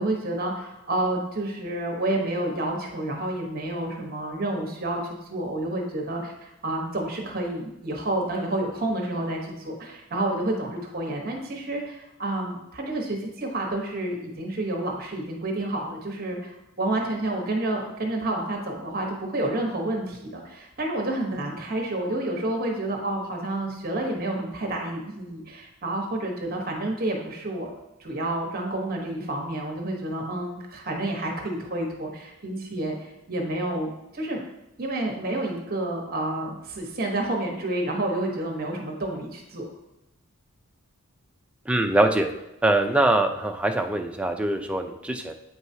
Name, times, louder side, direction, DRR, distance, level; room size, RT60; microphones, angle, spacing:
voice 1, 0.0-5.0 5.3-27.7 28.0-34.4 34.8-39.7, right 1 dB, 45° right, 0 dB, 1.0 m, -29 dB
voice 2, 41.7-42.3 42.6-45.3, right 1 dB, 5° right, 4 dB, 0.4 m, -23 dB
8.4 x 4.7 x 2.7 m, 0.91 s
head